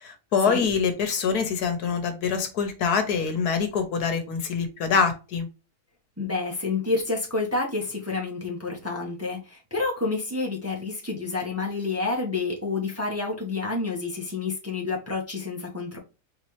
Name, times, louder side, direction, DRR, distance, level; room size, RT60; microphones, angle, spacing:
voice 1, 0.0-5.5, left 6 dB, 75° left, 1.4 m, -25 dB
voice 2, 6.2-16.0, left 3 dB, 10° right, 0.9 m, -29 dB
4.2 x 3.3 x 3.1 m
omnidirectional pair, 1.7 m